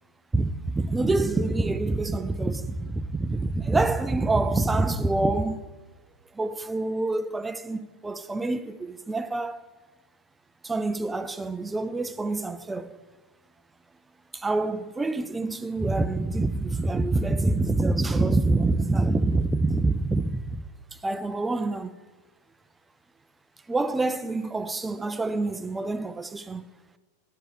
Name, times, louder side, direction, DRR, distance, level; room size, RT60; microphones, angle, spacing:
voice 1, 0.3-5.6 6.3-9.6 10.6-13.0 14.3-20.6 21.0-21.9 23.7-26.6, right 2 dB, 10° right, 0.4 m, -26 dB
9.9 x 7.0 x 5.5 m
figure-of-eight pair, 90°, 0 cm